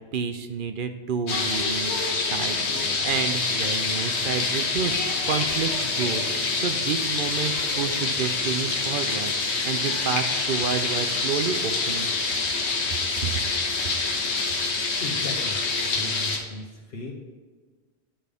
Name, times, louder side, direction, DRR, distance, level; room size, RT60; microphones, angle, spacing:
voice 1, 0.1-6.3 6.6-12.1 13.2-13.3, right 6 dB, 60° right, 8 dB, 0.7 m, -30 dB
sound 1, 1.3-16.4, left 3 dB, 90° left, 1.3 m, -26 dB
voice 2, 15.0-15.6 15.9-17.1, left 2 dB, 65° left, -1 dB, 1.1 m, -36 dB
11.5 x 5.4 x 3.5 m, 1.4 s
omnidirectional pair, 1.1 m